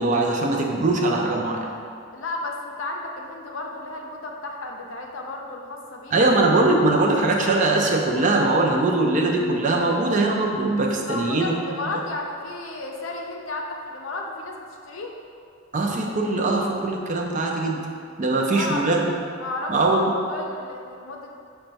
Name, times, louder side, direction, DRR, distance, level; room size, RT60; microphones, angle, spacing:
voice 1, 0.0-1.7 6.1-11.5 15.7-17.8 18.2-19.1 19.7-20.1, right 2 dB, 40° right, 0 dB, 0.4 m, -21 dB
voice 2, 2.1-6.2 11.1-15.1 18.3-21.4, left 2 dB, 70° left, 1 dB, 0.5 m, -33 dB
5.5 x 2.3 x 4.0 m, 2.4 s
head